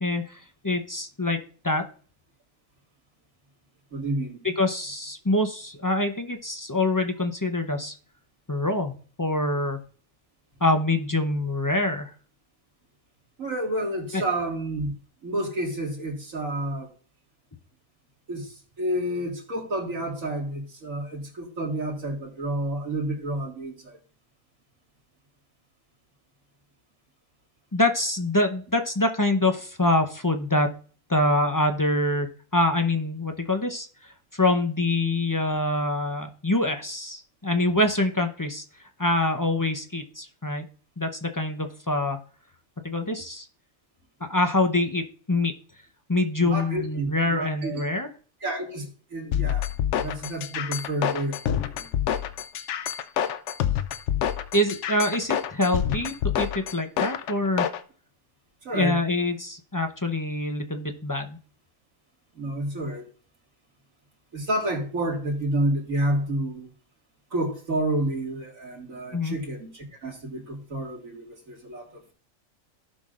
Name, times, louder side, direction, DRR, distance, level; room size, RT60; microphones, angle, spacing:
voice 1, 0.0-1.4 1.6-1.9 4.4-7.9 8.5-9.8 10.6-12.1 14.1-14.2 27.7-30.7 31.1-32.3 32.5-38.6 39.0-40.6 41.0-42.2 42.8-43.5 44.2-45.5 46.1-48.1 54.5-57.7 58.7-61.4 69.1-69.4, left 2 dB, 20° left, 0.6 m, -25 dB
voice 2, 3.9-4.4 13.4-14.9 15.2-16.9 18.3-24.0 46.4-47.9 48.4-49.7 50.0-52.3 58.6-59.0 62.3-63.1 64.3-66.7 67.3-72.1, right 1 dB, 85° right, 2.5 m, -30 dB
sound 1, 49.3-57.8, left 10 dB, 70° left, 0.9 m, -27 dB
16.0 x 5.9 x 2.5 m
omnidirectional pair, 1.4 m